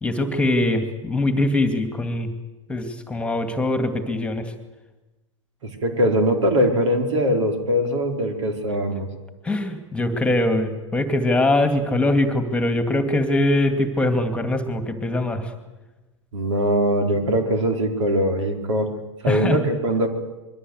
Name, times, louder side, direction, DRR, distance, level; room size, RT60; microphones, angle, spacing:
voice 1, 0.0-2.3 2.7-4.5 9.4-15.5 19.3-19.6, left 1 dB, 5° left, 7 dB, 2.6 m, -22 dB
voice 2, 5.6-9.1 16.3-18.9 19.2-20.1, equal, 65° right, 4 dB, 4.6 m, -21 dB
26.5 x 23.0 x 8.2 m, 1.1 s
figure-of-eight pair, 100°, 17 cm